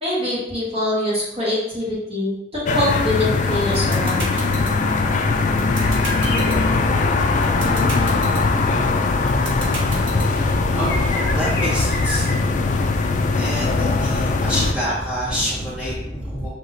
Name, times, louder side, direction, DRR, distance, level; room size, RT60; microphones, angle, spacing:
voice 1, 0.0-4.6, left 1 dB, 30° right, -9 dB, 1.3 m, -24 dB
sound 1, 2.7-14.7, left 3 dB, 40° left, 0.3 m, -20 dB
sound 2, 3.5-10.5, right 2 dB, 80° right, 1.3 m, -31 dB
sound 3, 5.7-7.4 8.7-8.8 10.8-12.3, left 2 dB, 60° left, 1.1 m, -31 dB
voice 2, 9.3-16.5, equal, 5° right, -9 dB, 1.6 m, -27 dB
5.8 x 2.8 x 2.6 m, 0.89 s
head